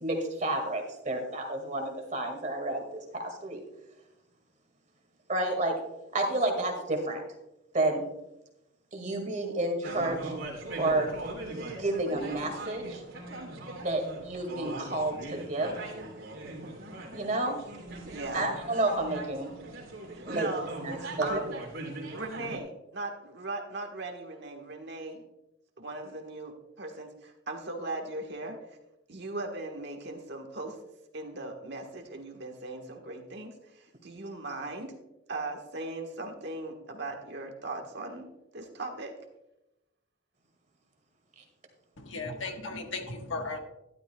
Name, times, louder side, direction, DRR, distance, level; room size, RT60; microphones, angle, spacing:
voice 1, 0.0-2.8 3.1-3.6 5.3-5.7 6.1-7.2 7.7-8.0 8.9-10.3 10.8-11.1 11.8-13.0 13.8-15.7 17.1-17.5 18.3-19.5 20.3-20.5 20.8-21.4 41.4-41.5, right 2 dB, 35° right, 3 dB, 2.0 m, -30 dB
sound 1, 9.8-22.6, right 2 dB, 75° right, 2.9 m, -41 dB
voice 2, 16.3-16.8 18.1-18.5 20.1-21.5 22.1-25.2 25.8-28.8 29.1-30.8 31.1-34.9 35.3-38.3 38.5-39.1, right 2 dB, 55° right, 3 dB, 1.4 m, -39 dB
voice 3, 42.0-43.6, left 3 dB, 65° left, 4 dB, 1.4 m, -36 dB
12.0 x 12.0 x 2.3 m, 0.90 s
head